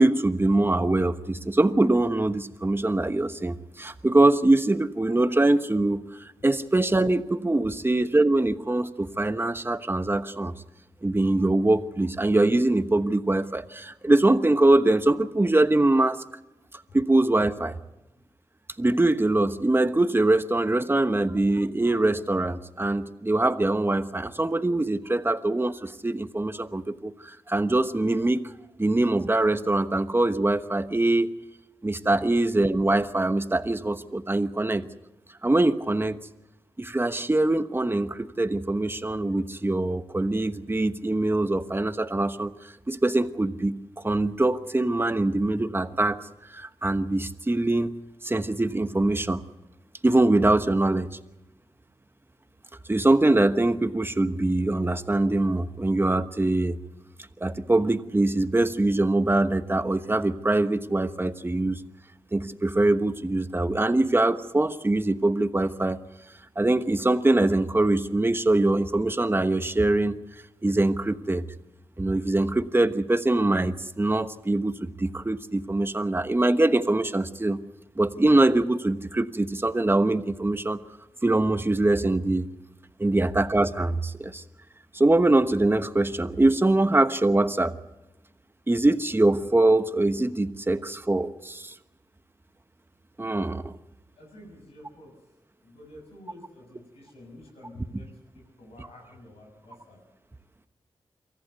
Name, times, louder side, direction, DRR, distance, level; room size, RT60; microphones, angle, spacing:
voice 1, 0.0-6.0 6.4-10.5 11.0-16.2 16.9-17.8 18.8-28.5 28.8-31.3 31.8-34.9 35.4-36.3 36.8-42.5 42.9-43.8 44.0-47.9 48.2-49.4 50.0-51.1 52.9-56.8 57.4-61.8 62.3-66.0 66.6-70.2 70.6-71.4 72.0-77.6 78.0-80.8 81.2-82.5 83.0-84.4 84.9-87.8 88.7-91.7 93.2-93.7, right 2 dB, 20° right, 11 dB, 1.2 m, -23 dB
voice 2, 94.2-95.1 95.6-100.0, left 1 dB, 90° left, 1 dB, 6.9 m, -49 dB
23.5 x 15.0 x 8.1 m, 0.99 s
cardioid pair, 45°, 10 cm